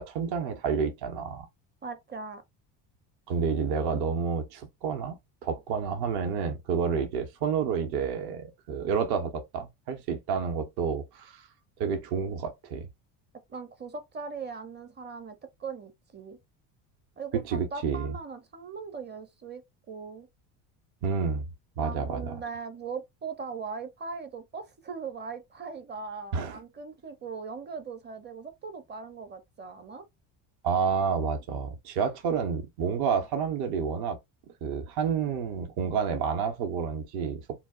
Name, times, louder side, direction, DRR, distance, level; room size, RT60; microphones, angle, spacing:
voice 1, 0.0-1.5 3.3-11.4 11.8-12.9 17.5-18.1 21.0-21.5 21.8-22.4 26.3-26.6 30.6-34.2 34.6-37.4, right 6 dB, 55° right, 0.8 m, -29 dB
voice 2, 1.8-2.4 13.5-16.4 17.2-19.6 19.9-20.3 21.8-30.1, right 5 dB, 20° right, 0.6 m, -39 dB
2.3 x 2.0 x 3.5 m
supercardioid pair, 90°, 49 cm